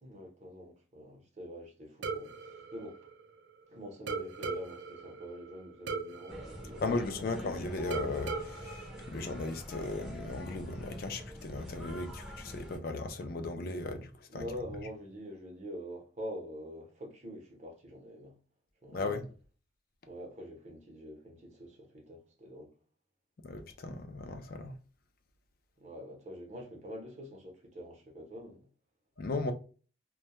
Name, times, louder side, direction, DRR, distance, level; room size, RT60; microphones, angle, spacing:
voice 1, 0.0-3.0 3.7-7.4 14.3-18.4 18.8-19.0 20.1-22.7 25.8-28.7, equal, 40° right, 0.7 m, -45 dB
sound 1, 2.0-3.6 4.1-7.5 7.9-9.9, right 5 dB, 75° right, 0.4 m, -40 dB
sound 2, 6.3-12.8, left 1 dB, ahead, 0.5 m, -46 dB
voice 2, 6.8-14.5 18.9-19.3 23.4-24.8 29.2-29.5, left 3 dB, 50° left, 0.3 m, -36 dB
2.2 x 2.1 x 2.8 m
head